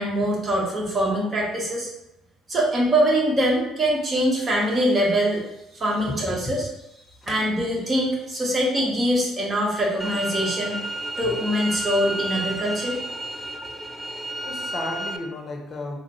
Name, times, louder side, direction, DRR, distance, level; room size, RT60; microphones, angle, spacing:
voice 1, 0.0-1.9 2.5-5.4 5.7-6.7 7.3-10.8 11.2-13.0, equal, 35° right, -3 dB, 1.2 m, -23 dB
voice 2, 6.1-6.7 7.2-7.5 11.2-11.4 14.4-16.0, left 2 dB, 40° left, 2 dB, 0.7 m, -34 dB
sound 1, 10.0-15.2, right 1 dB, 5° left, 0.4 m, -31 dB
3.7 x 2.1 x 3.1 m, 0.86 s
hypercardioid pair, 55°, 0 cm